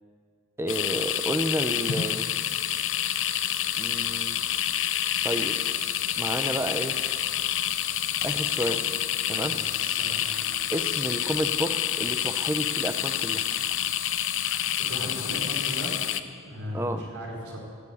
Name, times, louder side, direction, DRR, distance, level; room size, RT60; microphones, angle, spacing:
voice 1, 0.6-2.3 3.8-4.4 5.2-5.6 6.2-7.0 8.2-8.8 9.3-9.5 10.7-13.4 16.7-17.0, right 1 dB, 10° right, 8 dB, 0.6 m, -30 dB
sound 1, 0.7-16.2, left 11 dB, 60° left, 0.6 m, -28 dB
voice 2, 14.9-16.0 16.4-17.6, equal, 85° right, -2 dB, 4.2 m, -37 dB
17.0 x 7.4 x 8.3 m, 2.1 s
head